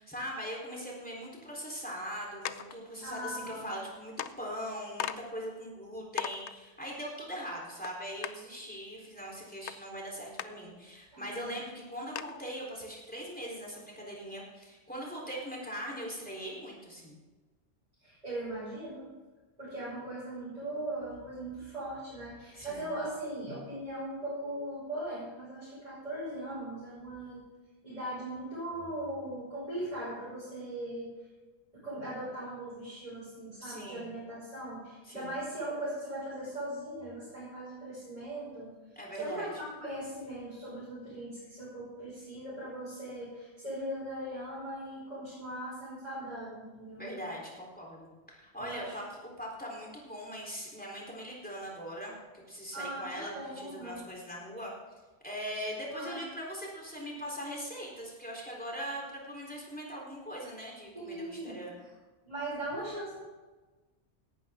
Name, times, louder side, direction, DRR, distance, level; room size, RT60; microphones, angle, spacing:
voice 1, 0.0-17.2 22.5-22.9 33.6-34.1 35.1-35.3 39.0-39.5 47.0-54.7 55.2-61.7, equal, 10° left, -3 dB, 3.8 m, -41 dB
sound 1, 2.5-2.7 3.8-3.9 4.2-4.3 5.0-5.2 5.7-5.8 6.2-6.5 7.8-7.9 8.2-8.3 9.7-9.8 10.4-10.5 11.1-11.2 11.5-11.6 12.2-12.4, left 9 dB, 80° left, 0.9 m, -36 dB
voice 2, 3.0-3.7 11.1-11.6 18.0-19.1 19.6-27.4 27.8-31.1 31.7-38.7 39.2-47.1 48.6-49.0 52.7-54.0 55.9-56.2 60.9-61.6 62.2-63.2, right 1 dB, 35° right, -9 dB, 5.7 m, -39 dB
17.0 x 12.5 x 3.7 m, 1.3 s
omnidirectional pair, 1.1 m